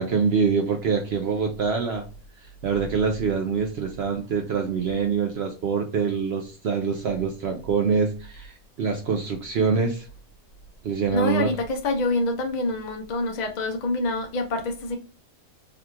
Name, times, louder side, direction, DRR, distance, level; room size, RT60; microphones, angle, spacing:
voice 1, 0.0-2.0 2.6-10.0 10.8-11.5, right 5 dB, 65° right, 0.7 m, -25 dB
voice 2, 11.1-15.0, left 2 dB, 65° left, 0.4 m, -26 dB
3.6 x 2.3 x 2.8 m
omnidirectional pair, 1.5 m